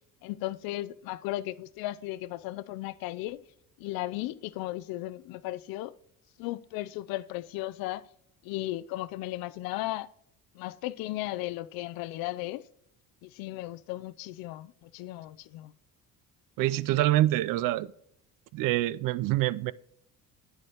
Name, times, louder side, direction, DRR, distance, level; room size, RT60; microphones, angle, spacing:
voice 1, 0.2-3.4 3.8-5.9 6.4-8.1 8.4-10.1 10.5-12.7 13.2-15.7, left 16 dB, 80° left, 0.5 m, -35 dB
voice 2, 16.6-17.9 18.5-19.7, right 15 dB, 70° right, 0.5 m, -26 dB
9.5 x 7.7 x 2.9 m
cardioid pair, 105°, 35 cm